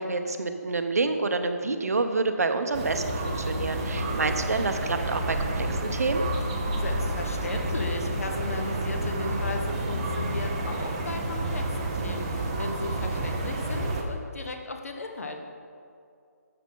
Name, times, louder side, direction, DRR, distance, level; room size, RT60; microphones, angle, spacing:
voice 1, 0.0-6.2, right 3 dB, 65° right, 7 dB, 0.9 m, -28 dB
sound 1, 2.7-14.0, right 1 dB, 20° right, 0.7 m, -30 dB
voice 2, 6.7-15.4, left 2 dB, 60° left, 4 dB, 1.3 m, -36 dB
12.5 x 7.6 x 3.9 m, 2.4 s
hypercardioid pair, 170°, 9 cm